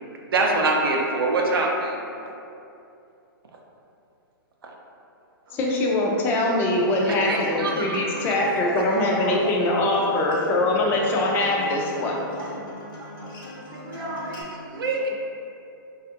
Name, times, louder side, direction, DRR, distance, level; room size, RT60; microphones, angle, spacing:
voice 1, 0.0-2.0 4.6-4.7 7.3-8.3 14.7-15.1, right 2 dB, 85° right, 0 dB, 0.5 m, -24 dB
voice 2, 5.5-12.3, left 2 dB, 20° left, -2 dB, 0.4 m, -23 dB
Acoustic guitar, 6.4-14.4, left 2 dB, 75° left, 1.0 m, -41 dB
voice 3, 7.2-7.7 8.2-9.5 9.8-10.2 12.0-12.1 12.4-12.5 13.0-13.1 13.7-15.1, right 1 dB, 55° right, -4 dB, 0.8 m, -36 dB
3.3 x 2.4 x 2.7 m, 2.7 s
hypercardioid pair, 150°, 12 cm